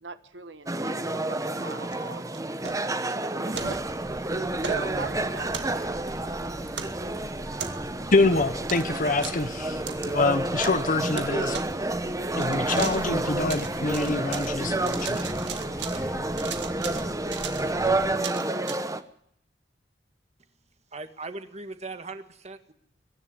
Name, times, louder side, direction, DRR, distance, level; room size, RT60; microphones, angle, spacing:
voice 1, 0.0-2.3 2.6-5.8, right 4 dB, 85° right, 1.4 m, -41 dB
sound 1, 0.7-19.0, right 2 dB, 20° right, 1.1 m, -30 dB
sound 2, 1.9-3.1 3.5-3.7 4.6-4.8 5.5-6.1 6.7-7.0 7.6-8.0 8.7-8.9 9.2-9.4 9.9-10.1 10.6-10.9 11.2-11.3 11.5-11.7 12.3-13.1 13.4-14.5 14.9-16.0 16.3-18.7, right 7 dB, 70° right, 2.1 m, -37 dB
sound 3, 3.5-18.2, equal, 5° left, 1.6 m, -41 dB
voice 2, 8.1-11.6 12.4-15.3, left 3 dB, 45° left, 1.0 m, -26 dB
voice 3, 20.9-22.7, right 3 dB, 40° right, 1.8 m, -39 dB
24.0 x 11.0 x 10.0 m
head